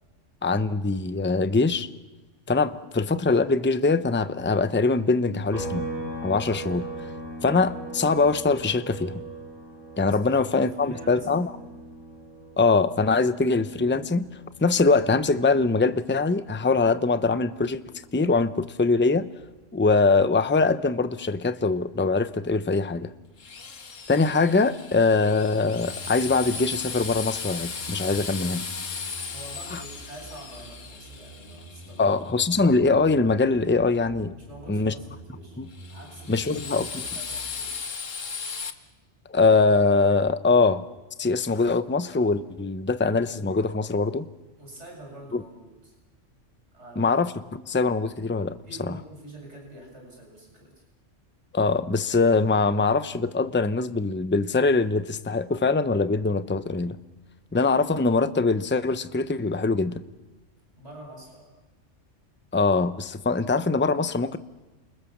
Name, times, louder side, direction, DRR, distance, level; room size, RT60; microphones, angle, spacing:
voice 1, 0.4-1.9 2.5-5.8 6.2-6.9 7.4-9.2 10.0-11.5 12.6-14.3 14.6-17.8 18.1-19.3 19.7-23.1 24.1-28.6 29.7-29.8 32.0-34.3 34.7-34.9 35.6-35.7 36.3-36.9 39.3-40.9 41.2-44.3 45.3-45.4 47.0-48.6 48.9-49.0 51.5-57.0 57.5-60.0 62.5-64.4, left 3 dB, 10° left, 12 dB, 0.7 m, -23 dB
sound 1, 5.5-19.1 19.4-21.6, right 2 dB, 30° right, 7.7 m, -41 dB
voice 2, 10.0-11.5 29.3-32.2 34.4-35.6 35.9-37.9 44.6-46.0 46.7-47.1 48.6-50.8 60.8-61.5, right 1 dB, 65° right, 0 dB, 8.0 m, -45 dB
sound 2, 19.4-19.5 25.0-37.6, right 2 dB, 50° right, 4.7 m, -47 dB
Drill, 23.4-32.3 35.7-38.7, left 5 dB, 90° left, 1.9 m, -36 dB
29.0 x 24.0 x 7.4 m, 1.2 s
omnidirectional pair, 1.3 m